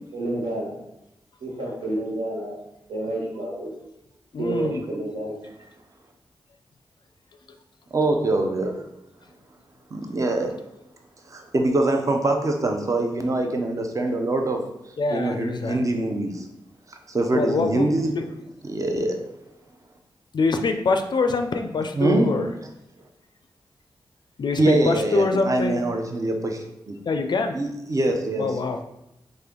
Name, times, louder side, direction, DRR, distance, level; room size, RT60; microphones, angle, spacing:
voice 1, 0.1-0.8 1.4-2.6 2.9-3.7 4.4-5.4, right 2 dB, 80° right, -4 dB, 1.2 m, -29 dB
voice 2, 4.3-4.8 15.0-15.9 17.3-17.9 18.1-18.3 20.3-22.5 24.4-25.8 27.1-27.5 28.4-28.8, left 3 dB, 60° left, 6 dB, 0.4 m, -24 dB
voice 3, 7.9-8.8 9.9-10.5 11.3-14.6 15.1-16.5 16.9-18.1 18.6-19.2 22.0-22.3 24.6-27.0 27.5-28.5, right 2 dB, 40° right, 4 dB, 0.6 m, -24 dB
3.3 x 2.5 x 3.7 m, 0.84 s
cardioid pair, 55°, 9 cm